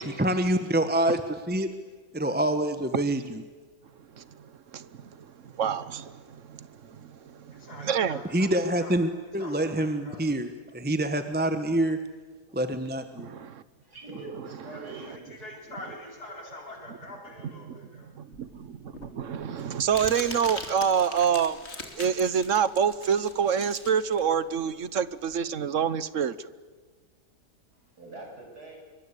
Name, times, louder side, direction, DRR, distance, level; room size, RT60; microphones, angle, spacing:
voice 1, 0.0-1.7 2.1-3.4 8.3-12.0 12.5-13.3, right 1 dB, 5° right, 8 dB, 1.0 m, -26 dB
voice 2, 4.7-8.2 13.2-13.6 17.4-17.8 18.2-21.6 22.0-26.5, right 7 dB, 55° right, 16 dB, 1.2 m, -27 dB
voice 3, 7.5-8.9 9.4-10.2 14.6-14.8 15.1-18.1, left 2 dB, 70° left, 0 dB, 5.0 m, -44 dB
voice 4, 13.8-15.9 28.0-28.8, right 2 dB, 75° right, 0 dB, 8.4 m, -44 dB
Crumpling crinkling, 18.3-25.4, left 2 dB, 40° left, 3.0 m, -41 dB
26.5 x 24.0 x 8.4 m, 1.4 s
omnidirectional pair, 1.7 m